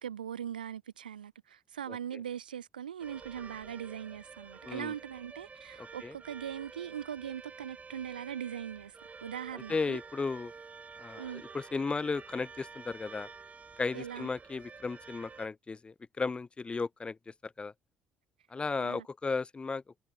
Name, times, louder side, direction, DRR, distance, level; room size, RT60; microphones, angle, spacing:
voice 1, 0.0-9.0 9.2-10.0 11.2-11.4 13.9-14.3 18.8-19.1, right 9 dB, 80° right, 0.4 m, -40 dB
sound 1, 3.0-15.5, right 5 dB, 30° right, 7.4 m, -50 dB
voice 2, 5.8-6.1 9.5-10.5 11.0-13.3 13.8-17.7 18.5-19.8, left 4 dB, 20° left, 0.4 m, -35 dB
figure-of-eight pair, 50°, 5 cm